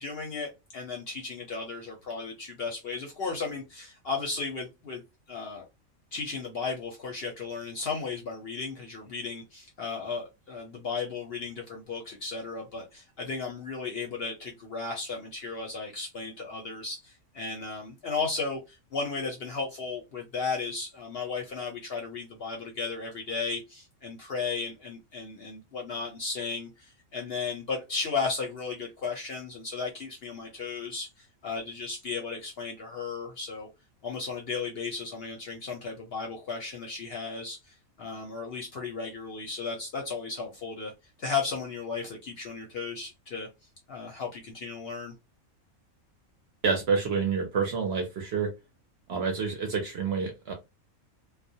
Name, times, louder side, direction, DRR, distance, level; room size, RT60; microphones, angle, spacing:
voice 1, 0.0-5.7 6.1-33.7 34.0-40.9 41.2-43.5 43.9-45.1, left 4 dB, 60° left, 0.7 m, -35 dB
voice 2, 46.6-48.5 49.1-50.5, right 5 dB, 60° right, 0.7 m, -28 dB
2.3 x 2.1 x 2.6 m
omnidirectional pair, 1.4 m